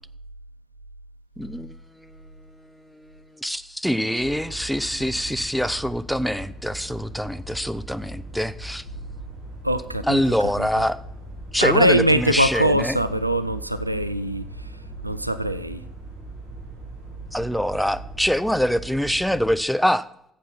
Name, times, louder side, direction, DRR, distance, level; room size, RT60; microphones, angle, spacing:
voice 1, 1.4-1.7 3.4-8.8 10.0-11.0 11.5-13.0 17.3-20.1, equal, ahead, 0.6 m, -24 dB
sound 1, 4.2-19.6, right 2 dB, 65° right, 4.6 m, -39 dB
voice 2, 9.6-10.9 11.6-14.7 15.0-15.8, right 1 dB, 90° right, 0.3 m, -22 dB
14.0 x 7.5 x 4.1 m
figure-of-eight pair, 50°, 0 cm